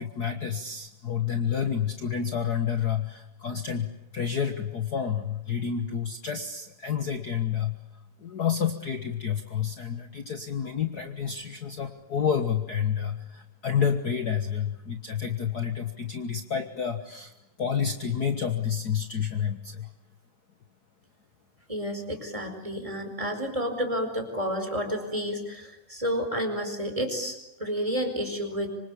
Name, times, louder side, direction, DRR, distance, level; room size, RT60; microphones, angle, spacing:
voice 1, 0.0-7.8 8.2-17.3 17.6-19.9, left 7 dB, 50° left, 7 dB, 1.2 m, -29 dB
voice 2, 21.7-28.7, equal, 10° right, 5 dB, 4.5 m, -30 dB
26.0 x 26.0 x 8.5 m, 0.93 s
omnidirectional pair, 3.8 m